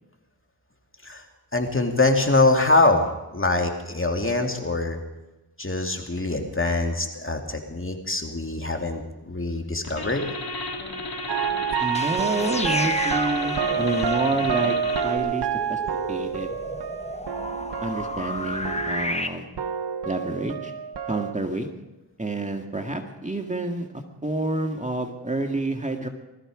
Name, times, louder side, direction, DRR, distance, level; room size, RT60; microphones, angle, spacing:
voice 1, 1.5-5.0 5.6-10.3, left 2 dB, 30° left, 3 dB, 2.5 m, -24 dB
sound 1, 9.8-15.2, left 2 dB, 65° left, 2.7 m, -33 dB
sound 2, 11.3-19.3 19.6-21.3, right 8 dB, 85° right, 0.8 m, -28 dB
sound 3, 11.8-19.3, left 2 dB, 15° left, 1.1 m, -33 dB
voice 2, 11.8-14.8 15.0-15.8 16.1-16.5 17.8-19.5 20.1-20.7 21.1-21.7 22.2-26.1, right 2 dB, 20° right, 4 dB, 1.8 m, -28 dB
20.5 x 13.5 x 4.9 m, 1.0 s
cardioid pair, 40°, 39 cm